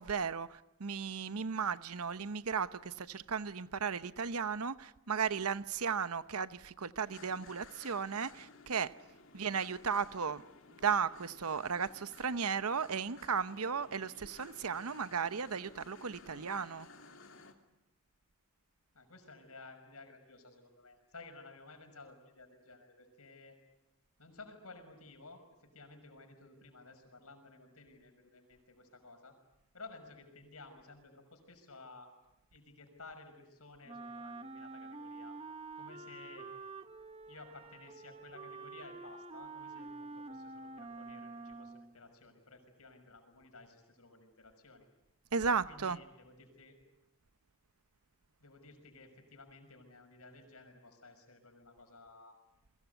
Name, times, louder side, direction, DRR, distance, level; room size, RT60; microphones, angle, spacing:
voice 1, 0.0-8.9 9.3-10.4 10.7-16.9 45.3-46.0, right 6 dB, 85° right, 0.9 m, -35 dB
sound 1, 7.0-17.5, left 3 dB, 60° left, 2.8 m, -56 dB
voice 2, 18.9-23.6 24.2-29.4 29.7-32.1 32.5-35.4 35.7-36.5 37.3-44.9 45.6-46.8 48.4-52.4, left 3 dB, 85° left, 6.2 m, -55 dB
Wind instrument woodwind instrument, 33.9-42.0, right 3 dB, 25° right, 1.0 m, -47 dB
30.0 x 22.5 x 8.1 m
head